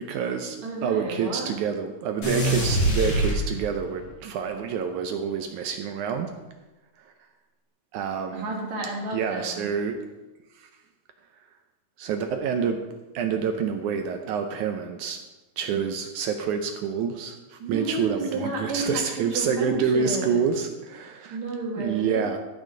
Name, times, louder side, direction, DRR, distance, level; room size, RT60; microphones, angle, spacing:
voice 1, 0.0-6.3 7.0-7.1 7.9-8.5 9.1-10.0 10.5-10.7 12.0-12.8 13.1-15.2 15.6-21.4 21.8-22.4, right 6 dB, 80° right, 5 dB, 1.8 m, -27 dB
voice 2, 0.6-1.5 8.3-9.7 17.6-20.4 21.3-22.2, right 2 dB, 55° right, -2 dB, 2.7 m, -31 dB
sound 1, 2.2-4.0, right 1 dB, 30° left, 2.2 m, -24 dB
12.5 x 6.6 x 4.9 m, 1.1 s
omnidirectional pair, 4.2 m